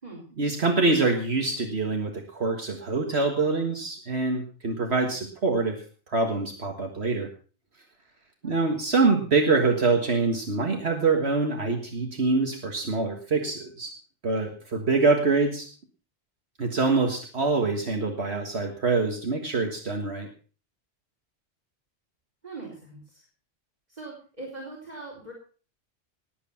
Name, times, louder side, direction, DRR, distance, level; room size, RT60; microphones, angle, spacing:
voice 1, 0.4-7.3 8.4-13.9 14.2-15.7 16.6-20.3, right 3 dB, 65° right, 3 dB, 2.0 m, -25 dB
voice 2, 8.4-8.8 22.4-23.2 23.9-25.3, right 3 dB, 35° right, -2 dB, 4.4 m, -41 dB
19.5 x 8.5 x 5.8 m, 0.40 s
omnidirectional pair, 1.2 m